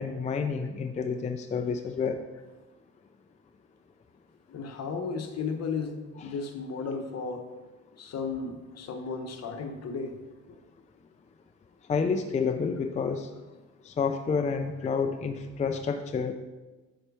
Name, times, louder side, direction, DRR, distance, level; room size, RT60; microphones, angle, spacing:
voice 1, 0.0-2.2 6.2-6.3 11.9-13.3 13.8-16.3, left 5 dB, 25° left, 7 dB, 0.4 m, -29 dB
voice 2, 4.5-7.4 8.0-10.2, left 5 dB, 55° left, 5 dB, 0.9 m, -34 dB
6.5 x 4.3 x 4.6 m, 1.2 s
cardioid pair, 90°, 30 cm